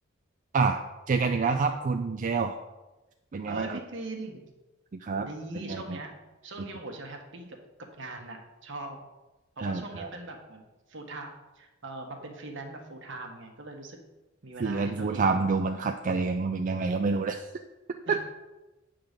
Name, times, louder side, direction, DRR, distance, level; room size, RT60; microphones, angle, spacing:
voice 1, 0.5-2.6 3.3-3.8 5.0-5.3 5.5-6.0 6.6-6.7 9.6-10.1 14.6-17.5 18.1-18.2, right 4 dB, 40° right, 5 dB, 0.4 m, -28 dB
voice 2, 3.5-4.4 5.2-6.2 6.4-7.6 8.0-9.0 9.6-14.0 14.4-15.5 18.0-18.2, right 2 dB, 65° right, 3 dB, 1.4 m, -41 dB
8.8 x 3.9 x 6.6 m, 1.1 s
head